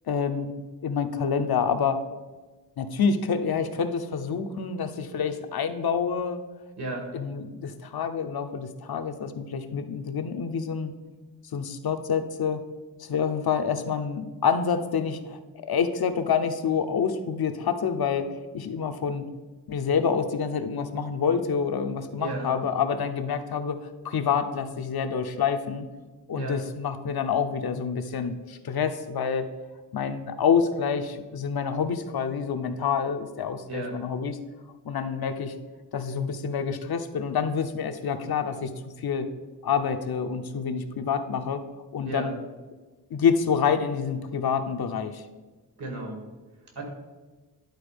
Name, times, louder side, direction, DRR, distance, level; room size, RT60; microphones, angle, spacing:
voice 1, 0.1-0.5 0.8-2.0 2.8-6.4 7.1-10.9 11.5-12.6 13.0-18.3 18.5-19.3 19.7-25.9 26.3-29.5 29.9-34.4 34.8-35.5 35.9-39.3 39.6-41.6 41.9-42.3 43.1-45.3, left 6 dB, 65° left, 7 dB, 0.7 m, -27 dB
voice 2, 6.8-7.1 22.2-22.5 26.3-26.6 33.7-33.9 42.0-42.3 45.8-46.2 46.8-46.9, right 2 dB, 70° right, 2 dB, 2.3 m, -33 dB
10.5 x 4.2 x 5.2 m, 1.2 s
wide cardioid pair, 120°, 40 cm